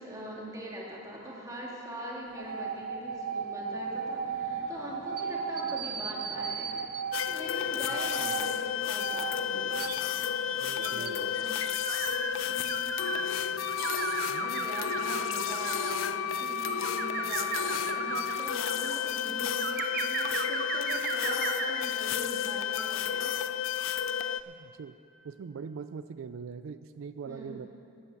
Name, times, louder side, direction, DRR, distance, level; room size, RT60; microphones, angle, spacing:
voice 1, 0.0-6.7 7.3-9.9 10.7-11.6 12.5-12.9 13.6-13.9 14.4-23.9 27.3-27.7, right 1 dB, 15° right, -4 dB, 2.3 m, -42 dB
sound 1, 2.3-16.2, left 1 dB, 40° left, 2.0 m, -56 dB
sound 2, 2.4-7.2 7.9-8.5 9.0-9.3 9.7-13.3 13.7-16.1 16.6-18.9 19.6-21.8, right 6 dB, 50° right, 0.7 m, -35 dB
sound 3, 7.1-24.4, left 9 dB, 75° left, 0.4 m, -32 dB
voice 2, 10.6-11.3 14.3-14.7 24.5-25.0 25.2-27.7, right 6 dB, 80° right, 12 dB, 0.4 m, -42 dB
13.0 x 9.6 x 7.0 m, 2.7 s
head